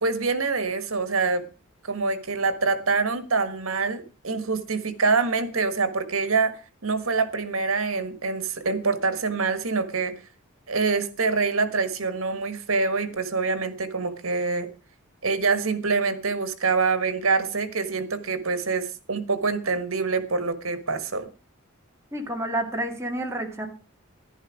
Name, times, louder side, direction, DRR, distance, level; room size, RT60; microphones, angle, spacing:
voice 1, 0.0-1.4 1.8-6.5 6.8-10.1 10.7-14.7 15.2-21.3, right 4 dB, 80° right, 11 dB, 1.5 m, -25 dB
voice 2, 22.1-23.7, right 1 dB, 15° right, 2 dB, 2.1 m, -29 dB
11.0 x 11.0 x 4.9 m, 0.34 s
head